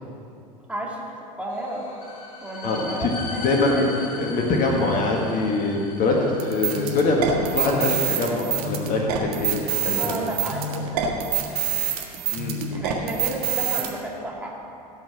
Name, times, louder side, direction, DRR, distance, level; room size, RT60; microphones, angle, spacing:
voice 1, 0.7-1.0 1.4-1.9 2.4-3.9 10.0-11.3 12.7-14.6, right 1 dB, 5° right, -3 dB, 2.6 m, -32 dB
sound 1, 1.5-8.3, left 3 dB, 60° left, 2.5 m, -39 dB
voice 2, 2.6-3.1 3.4-10.1 12.3-12.9, left 2 dB, 40° left, 0 dB, 1.8 m, -23 dB
sound 2, 6.4-13.9, right 8 dB, 65° right, 1.6 m, -26 dB
16.5 x 5.5 x 7.2 m, 2.6 s
figure-of-eight pair, 80°, 21 cm